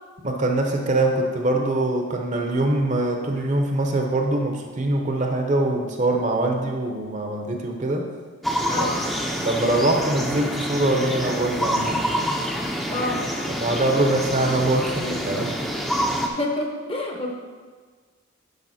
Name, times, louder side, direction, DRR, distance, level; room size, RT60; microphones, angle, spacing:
voice 1, 0.2-8.1 8.8-8.9 9.3-12.0 13.5-15.5, right 2 dB, 35° right, 3 dB, 0.8 m, -23 dB
sound 1, 8.4-16.3, equal, ahead, 0.6 m, -27 dB
voice 2, 8.7-9.0 12.9-13.2 16.2-17.3, left 2 dB, 25° left, 2 dB, 0.9 m, -28 dB
10.5 x 5.4 x 4.2 m, 1.5 s
head